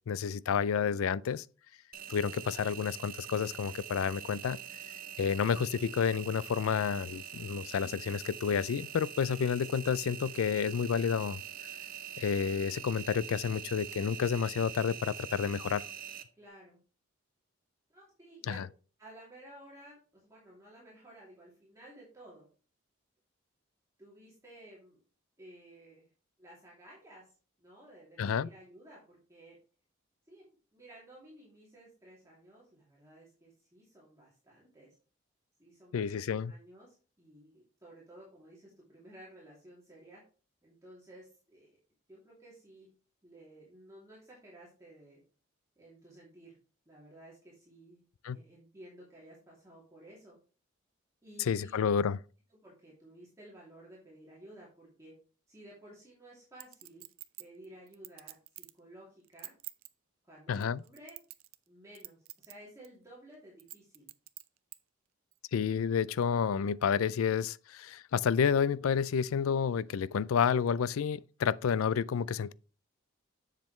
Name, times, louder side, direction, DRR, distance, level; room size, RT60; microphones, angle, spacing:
voice 1, 0.1-1.4 2.1-4.6 5.2-11.4 12.2-15.8 18.5-18.6 28.2-28.5 35.9-36.5 48.2-48.4 51.4-52.2 60.5-60.8 65.5-72.5, left 7 dB, 90° left, 0.4 m, -30 dB
Engine, 1.9-16.2, right 9 dB, 45° right, 0.7 m, -44 dB
voice 2, 16.4-16.8 17.9-18.7 19.0-22.5 24.0-25.0 25.4-26.1 26.4-27.3 27.6-29.6 30.3-35.0 35.6-40.2 40.6-41.8 42.1-42.9 43.2-45.2 45.8-46.6 46.9-50.4 51.2-51.8 52.6-55.1 55.5-57.0 57.4-59.5 60.2-61.2 61.7-64.1, right 1 dB, 15° right, 2.7 m, -55 dB
Chink clink, 56.6-58.8 59.2-59.9 60.5-61.7 61.9-62.5 62.8-62.9 63.6-64.8 65.3-65.4, right 18 dB, 80° right, 0.5 m, -47 dB
7.6 x 7.4 x 3.1 m
head